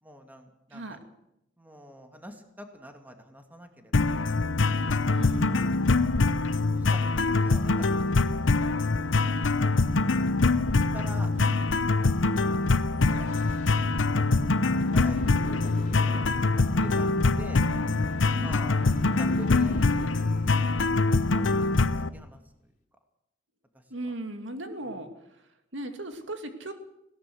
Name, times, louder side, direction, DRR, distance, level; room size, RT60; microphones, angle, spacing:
voice 1, 0.0-1.0 1.6-4.2 6.2-6.3 6.7-9.4 10.9-11.6 14.9-15.7 16.1-16.2 16.8-17.6 18.4-18.8 19.2-21.6 22.1-22.4, equal, 10° right, 5 dB, 2.3 m, -46 dB
sound 1, 3.9-22.1, left 3 dB, 85° left, 0.8 m, -24 dB
voice 2, 5.1-5.7 11.3-11.7 15.2-15.7 18.4-18.7 23.9-25.4 25.7-26.7, right 1 dB, 70° right, 6 dB, 2.3 m, -38 dB
sound 2, 12.9-21.1, left 1 dB, 40° left, 3.7 m, -39 dB
19.0 x 17.5 x 7.8 m, 0.80 s
head